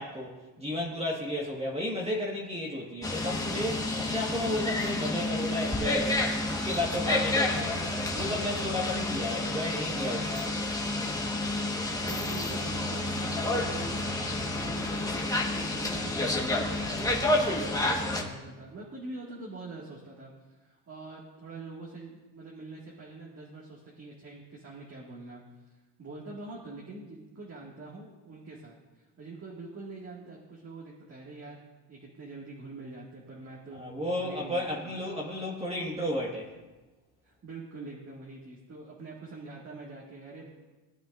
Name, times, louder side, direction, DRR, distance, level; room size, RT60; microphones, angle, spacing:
voice 1, 0.0-7.8 8.1-10.5 33.8-36.5, left 1 dB, 15° right, -3 dB, 1.7 m, -33 dB
sound 1, 3.0-18.2, left 2 dB, 10° left, 1.4 m, -30 dB
voice 2, 12.0-20.3 20.6-25.4 26.0-33.8 34.1-35.0 37.2-40.5, right 3 dB, 35° right, -4 dB, 2.1 m, -45 dB
18.5 x 8.7 x 2.6 m, 1.2 s
cardioid pair, 105°, 42 cm